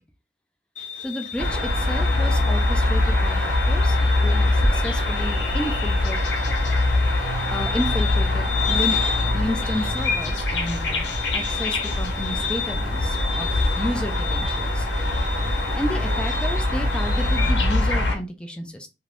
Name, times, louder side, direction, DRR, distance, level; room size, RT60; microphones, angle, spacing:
sound 1, 0.7-17.5, left 6 dB, 45° left, 0.7 m, -33 dB
voice 1, 1.0-6.2 7.5-9.0 9.3-14.9 15.7-18.9, left 1 dB, 5° left, 4 dB, 0.4 m, -31 dB
sound 2, 1.4-18.1, left 2 dB, 80° left, 0.7 m, -23 dB
2.5 x 2.2 x 3.2 m, 0.27 s
head